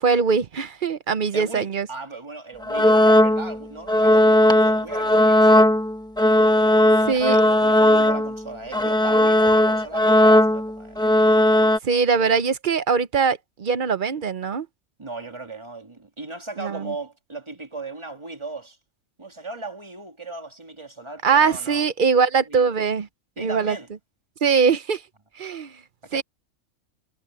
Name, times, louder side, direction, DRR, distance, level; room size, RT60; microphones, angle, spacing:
voice 1, 0.0-1.9 7.1-7.4 11.8-14.7 16.6-16.9 21.2-23.1 23.4-23.8 24.4-25.0 25.4-25.7 26.1-26.2, right 5 dB, 45° right, 0.7 m, -21 dB
voice 2, 1.3-5.7 7.0-11.0 11.6-11.8 15.0-18.8 19.2-21.9 22.5-22.7 23.4-23.9 26.0-26.2, right 3 dB, 20° right, 2.2 m, -37 dB
sound 1, 2.6-3.6 3.9-8.4 8.7-11.8, left 1 dB, 5° left, 1.0 m, -17 dB
omnidirectional pair, 1.4 m